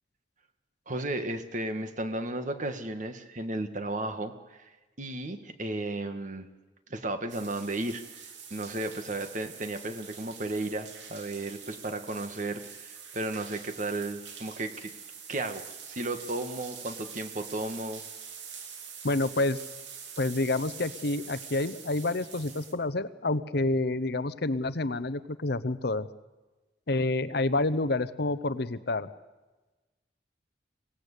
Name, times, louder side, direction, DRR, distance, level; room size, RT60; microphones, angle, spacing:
voice 1, 0.9-4.6 5.0-6.5 6.9-14.9 15.3-18.0, right 2 dB, 45° right, 8 dB, 1.8 m, -34 dB
sound 1, 7.3-22.7, right 6 dB, 90° right, 2.9 m, -45 dB
voice 2, 19.0-19.6 20.2-26.1 26.9-29.1, left 2 dB, 65° left, 13 dB, 0.9 m, -28 dB
25.0 x 17.5 x 8.4 m, 1.2 s
head